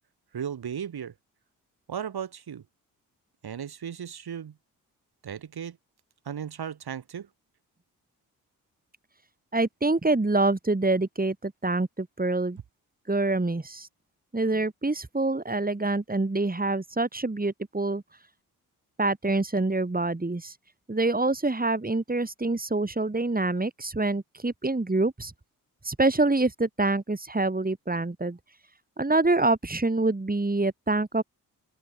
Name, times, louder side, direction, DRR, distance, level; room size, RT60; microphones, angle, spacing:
voice 1, 0.3-1.1 1.9-2.6 3.4-4.6 5.2-5.8 6.3-7.3, right 8 dB, 60° right, 7.5 m, -35 dB
voice 2, 9.5-12.6 13.1-13.9 14.3-18.0 19.0-20.6 20.9-25.3 25.8-28.4 29.0-31.2, right 2 dB, 20° right, 5.7 m, -26 dB
open air
hypercardioid pair, 40°, 43 cm